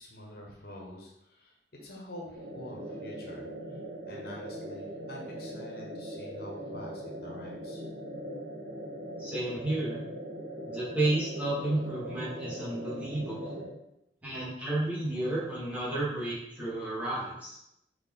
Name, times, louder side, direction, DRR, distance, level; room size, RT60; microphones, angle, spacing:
voice 1, 0.0-3.8 4.1-7.8, left 1 dB, 60° left, -1 dB, 0.9 m, -47 dB
sound 1, 2.3-13.7, right 1 dB, 80° right, 1.0 m, -40 dB
voice 2, 9.2-10.0 10.7-13.6 14.2-17.6, right 2 dB, 10° right, -7 dB, 1.2 m, -32 dB
4.3 x 3.0 x 3.6 m, 0.81 s
head